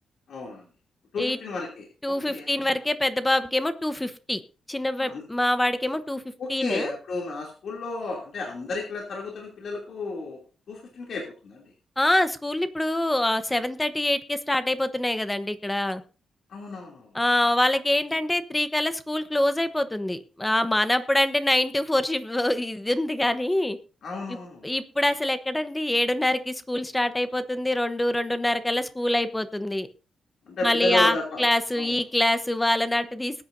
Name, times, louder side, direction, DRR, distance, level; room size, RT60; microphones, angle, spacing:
voice 1, 0.3-0.6 1.1-2.8 5.0-5.2 6.4-10.4 10.7-11.7 16.5-17.1 24.0-24.7 30.5-31.5 31.7-32.0, left 3 dB, 65° left, -1 dB, 2.9 m, -32 dB
voice 2, 2.0-4.4 4.7-6.2 6.5-6.9 12.0-16.0 17.1-23.8 24.3-24.4 24.6-29.9 30.6-33.5, left 1 dB, 10° left, 11 dB, 1.0 m, -25 dB
20.5 x 9.6 x 2.7 m, 0.36 s
wide cardioid pair, 130°, 0 cm